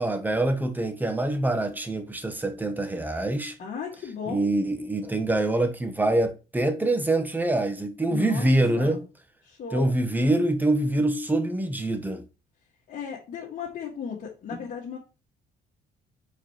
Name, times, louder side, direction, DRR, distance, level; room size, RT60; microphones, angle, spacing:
voice 1, 0.0-3.5 4.3-9.0 9.7-12.2 14.5-14.6, right 1 dB, 10° right, 1.0 m, -25 dB
voice 2, 3.6-4.5 8.1-9.1 9.4-10.0 12.9-15.0, left 7 dB, 50° left, 1.9 m, -36 dB
4.7 x 4.7 x 4.4 m
cardioid pair, 110°, 17 cm